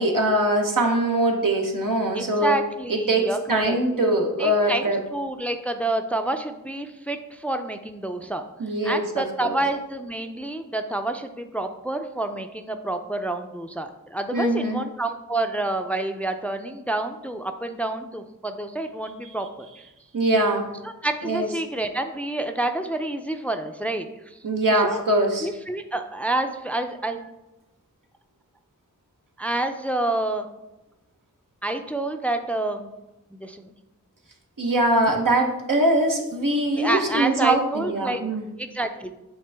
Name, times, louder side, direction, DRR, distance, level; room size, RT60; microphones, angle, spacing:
voice 1, 0.0-2.5 2.9-5.0 8.6-9.5 14.3-14.8 20.1-20.7 21.2-21.5 24.4-25.5 34.6-38.4, right 1 dB, 80° right, 1 dB, 1.0 m, -22 dB
voice 2, 2.1-4.0 4.4-8.4 8.8-19.7 21.0-24.4 24.7-25.0 25.4-27.3 29.4-30.5 31.6-32.9 33.3-33.7 36.8-38.2 38.6-39.1, right 2 dB, 5° left, 7 dB, 0.4 m, -28 dB
7.8 x 3.7 x 3.4 m, 0.97 s
wide cardioid pair, 50°, 32 cm